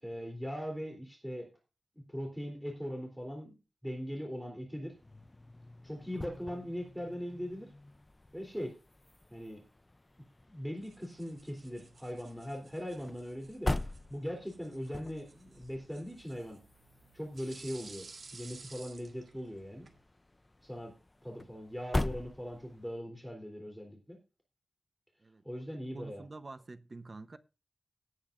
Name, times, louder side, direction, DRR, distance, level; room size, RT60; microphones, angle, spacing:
voice 1, 0.0-1.5 2.1-3.5 3.8-4.9 5.8-7.7 8.3-8.7 9.3-9.6 10.5-13.7 14.1-16.6 17.1-18.1 18.3-19.9 20.6-20.9 21.2-24.2 25.4-26.2, equal, 5° right, 3.3 m, -40 dB
sound 1, 4.9-23.0, left 2 dB, 25° left, 0.5 m, -43 dB
sound 2, 10.8-20.0, right 4 dB, 75° right, 1.7 m, -55 dB
voice 2, 25.2-27.4, right 3 dB, 40° right, 0.9 m, -48 dB
17.5 x 8.6 x 2.5 m
wide cardioid pair, 90°, 0 cm